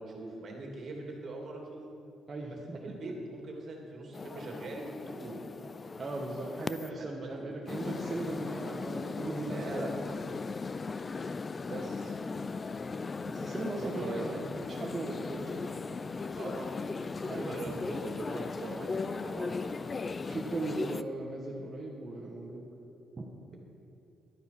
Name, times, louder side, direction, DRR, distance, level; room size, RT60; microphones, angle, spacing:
voice 1, 0.0-1.8 2.6-5.5 7.0-7.3 7.8-8.0 8.3-8.4 9.3-9.9 11.7-12.2 13.8-14.8 16.3-16.7 17.2-19.9 23.5-23.6, right 2 dB, 55° right, 0 dB, 2.7 m, -42 dB
voice 2, 2.3-3.1 6.0-10.0 13.2-15.7 17.3-17.8 20.3-22.7 23.1-23.3, right 2 dB, 30° right, -2 dB, 1.3 m, -38 dB
sound 1, 4.1-6.9 7.7-21.0, left 4 dB, 35° left, 0.4 m, -37 dB
12.0 x 9.1 x 6.0 m, 2.9 s
cardioid pair, 90°, 0 cm